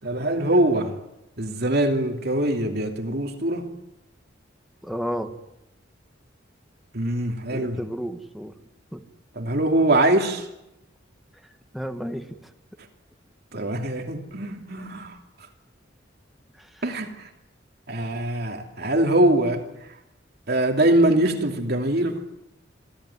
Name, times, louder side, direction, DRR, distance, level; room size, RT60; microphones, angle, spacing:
voice 1, 0.0-1.0 1.4-3.7 6.9-7.8 9.4-10.5 13.5-15.2 16.8-17.3 17.9-20.0 20.5-22.2, right 1 dB, 55° right, 4 dB, 2.7 m, -23 dB
voice 2, 4.8-5.3 7.5-8.5 8.9-9.0 11.7-12.5 16.6-16.8, equal, ahead, 6 dB, 1.8 m, -32 dB
26.5 x 16.5 x 9.9 m, 0.89 s
head